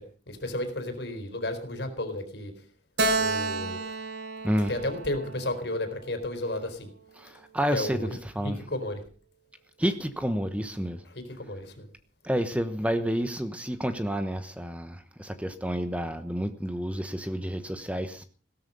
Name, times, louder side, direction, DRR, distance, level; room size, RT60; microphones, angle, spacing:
voice 1, 0.3-2.5 3.2-3.8 4.7-6.9 7.7-8.1 8.4-9.0 11.4-11.9, left 1 dB, 70° left, 4.1 m, -32 dB
Keyboard (musical), 3.0-6.4, right 3 dB, 65° right, 2.1 m, -31 dB
voice 2, 4.4-4.8 7.1-8.7 9.8-11.0 12.2-18.2, equal, 5° right, 1.1 m, -30 dB
17.5 x 13.0 x 5.4 m
head